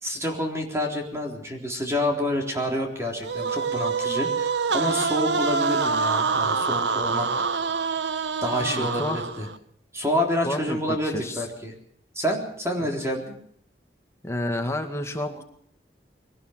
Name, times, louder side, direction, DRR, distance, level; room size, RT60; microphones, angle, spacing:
voice 1, 0.0-7.5 8.4-9.5 9.9-11.7 12.2-13.3, equal, 15° right, 1 dB, 3.8 m, -28 dB
sound 1, 3.2-9.6, right 5 dB, 85° right, 0.9 m, -26 dB
voice 2, 8.5-9.2 10.4-11.4 12.8-12.9 14.2-15.4, left 1 dB, 15° left, 5 dB, 2.0 m, -30 dB
22.5 x 18.5 x 6.6 m, 0.64 s
head